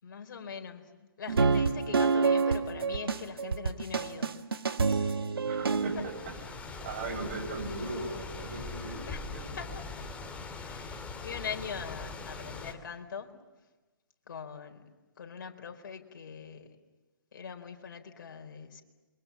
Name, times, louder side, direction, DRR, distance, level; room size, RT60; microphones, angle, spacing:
voice 1, 0.0-4.3 4.9-5.3 5.7-6.0 9.1-9.3 9.6-10.1 10.6-13.3 14.3-14.9 15.2-16.8 17.3-18.8, left 6 dB, 55° left, 4 dB, 4.3 m, -42 dB
sound 1, 1.3-6.2, right 4 dB, 85° right, 1.9 m, -28 dB
voice 2, 5.4-6.3 6.8-9.4, right 2 dB, 40° right, 3 dB, 7.7 m, -38 dB
sound 2, 5.6-12.7, left 3 dB, 10° left, 2.6 m, -41 dB
28.5 x 24.0 x 7.3 m, 1.2 s
hypercardioid pair, 145°, 12 cm